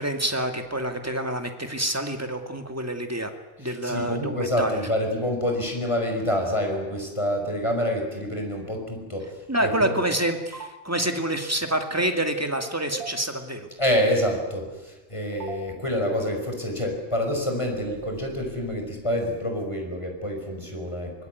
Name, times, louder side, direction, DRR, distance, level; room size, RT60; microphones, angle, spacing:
voice 1, 0.0-3.3 3.6-4.8 9.5-13.7, right 1 dB, 15° right, 5 dB, 2.3 m, -27 dB
voice 2, 3.6-10.0 13.8-21.1, equal, 25° left, 3 dB, 5.5 m, -27 dB
sound 1, 10.5-10.7 12.9-13.1 15.3-15.6 17.7-18.1, right 6 dB, 60° right, 3.4 m, -35 dB
24.0 x 21.5 x 9.6 m, 1.1 s
omnidirectional pair, 1.2 m